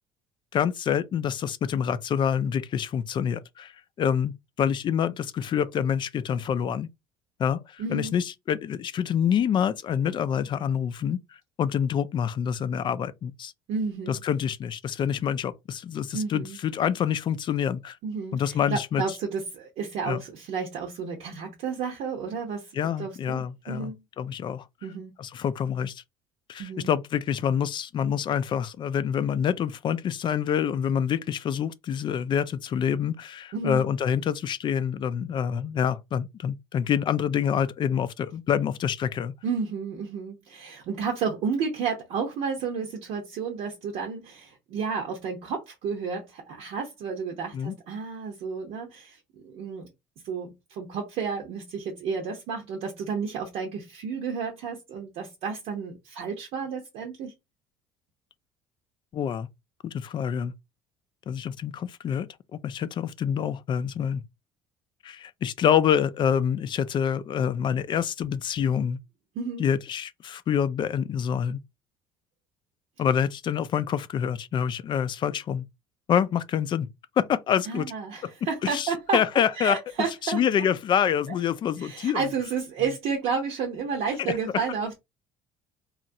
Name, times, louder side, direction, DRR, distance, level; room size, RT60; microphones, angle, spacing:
voice 1, 0.5-3.7 4.0-6.9 7.4-11.2 11.6-13.5 14.1-18.0 18.3-19.0 20.1-20.2 22.7-23.9 24.2-24.6 25.2-26.0 26.5-39.3 47.5-47.7 59.1-59.5 59.8-60.5 61.3-64.2 65.0-69.0 69.6-71.6 73.0-75.6 76.1-76.9 77.2-77.9 78.6-79.8 80.2-82.2, left 8 dB, 45° left, 0.3 m, -26 dB
voice 2, 7.8-8.1 13.7-14.2 16.1-16.6 18.0-22.7 23.0-24.0 24.8-25.1 26.6-26.9 33.5-33.8 39.4-49.9 50.2-57.3 69.4-69.7 77.7-79.2 79.6-80.4 81.3-81.4 81.8-85.0, right 5 dB, 70° right, 0.8 m, -31 dB
2.9 x 2.4 x 2.6 m
supercardioid pair, 80°, 12 cm